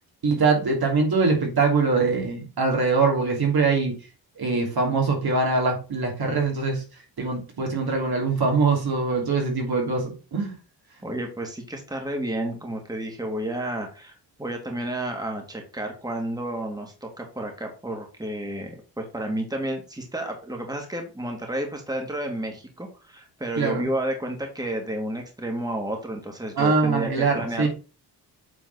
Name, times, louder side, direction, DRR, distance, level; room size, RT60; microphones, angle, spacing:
voice 1, 0.2-4.0 4.4-6.8 7.2-10.5 23.6-23.9 26.6-27.7, right 4 dB, 55° right, 1 dB, 2.8 m, -23 dB
voice 2, 11.0-27.7, right 1 dB, 10° right, 2 dB, 2.2 m, -31 dB
8.2 x 3.9 x 4.0 m, 0.34 s
cardioid pair, 60°, 43 cm